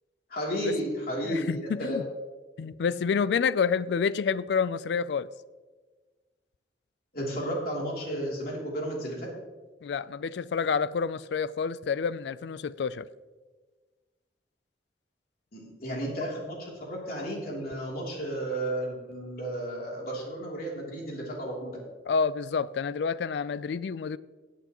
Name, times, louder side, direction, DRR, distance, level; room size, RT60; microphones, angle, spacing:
voice 1, 0.3-2.0 7.1-9.3 15.5-21.8, equal, 55° left, 2.9 m, -33 dB
voice 2, 1.2-2.1 2.6-5.3 9.8-13.1 22.1-24.2, left 6 dB, 70° left, 0.3 m, -28 dB
17.0 x 8.4 x 2.9 m
head